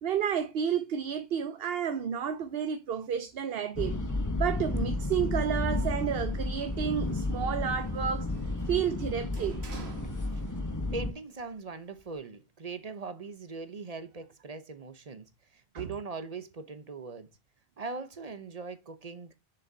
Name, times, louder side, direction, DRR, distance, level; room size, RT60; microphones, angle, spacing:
voice 1, 0.0-4.0 4.4-9.6 15.7-15.9, right 8 dB, 70° right, 0.9 m, -31 dB
sound 1, 3.8-11.1, left 2 dB, 20° left, 0.9 m, -32 dB
Sliding door, 6.1-10.9 11.2-12.2, right 5 dB, 85° right, 1.6 m, -51 dB
voice 2, 10.9-15.3 15.7-17.3 17.8-19.3, right 4 dB, 40° right, 0.9 m, -40 dB
7.2 x 6.7 x 2.6 m
omnidirectional pair, 1.0 m